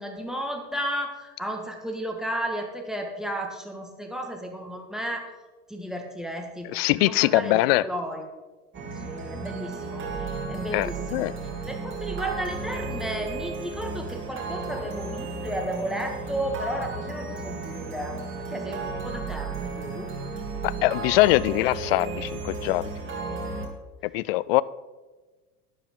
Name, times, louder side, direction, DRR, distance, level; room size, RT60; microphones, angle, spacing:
voice 1, 0.0-5.3 5.7-8.3 9.0-11.3 11.7-18.2 18.5-20.1, right 1 dB, ahead, 3 dB, 1.8 m, -33 dB
voice 2, 6.7-7.9 10.7-11.3 20.6-22.9 24.1-24.6, left 18 dB, 40° left, 19 dB, 0.4 m, -22 dB
sound 1, 8.7-23.7, right 3 dB, 25° right, 2.9 m, -34 dB
12.0 x 11.0 x 3.8 m, 1.2 s
figure-of-eight pair, 90°, 45 cm